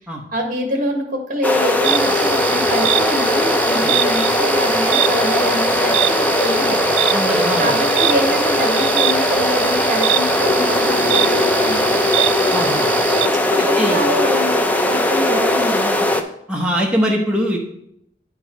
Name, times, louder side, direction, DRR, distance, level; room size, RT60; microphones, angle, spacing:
voice 1, 0.3-6.8 7.6-12.0 13.3-14.5 14.8-16.2, equal, 50° right, 3 dB, 1.6 m, -25 dB
sound 1, 1.4-16.2, left 1 dB, 10° left, 0.5 m, -18 dB
sound 2, 1.8-13.3, right 14 dB, 80° right, 0.3 m, -23 dB
voice 2, 7.1-7.7 12.5-13.1 13.8-14.0 16.5-17.6, equal, 5° right, -2 dB, 0.9 m, -22 dB
10.0 x 4.6 x 4.5 m, 0.75 s
head